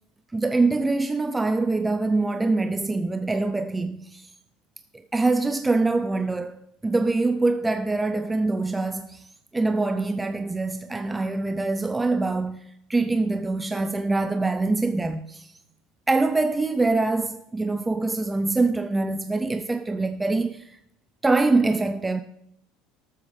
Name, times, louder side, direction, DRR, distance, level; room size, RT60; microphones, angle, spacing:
voice 1, 0.3-4.3 5.1-9.3 9.5-12.6 12.9-15.5 16.1-20.8 21.2-22.2, right 3 dB, 10° right, 0.6 m, -24 dB
19.5 x 7.7 x 3.5 m
figure-of-eight pair, 70°, 0 cm